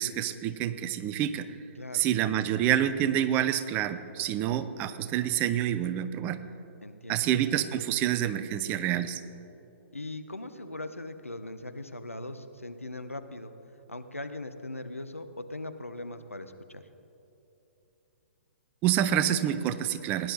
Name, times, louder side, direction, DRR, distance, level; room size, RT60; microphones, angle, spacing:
voice 1, 0.0-1.5 1.9-6.4 7.1-9.2 18.8-20.3, right 11 dB, 25° right, 13 dB, 0.5 m, -27 dB
voice 2, 1.8-2.1 6.8-7.3 9.9-13.5 13.9-16.8, left 2 dB, 85° left, 9 dB, 0.7 m, -40 dB
18.0 x 10.0 x 4.0 m, 2.9 s
figure-of-eight pair, 120°, 7 cm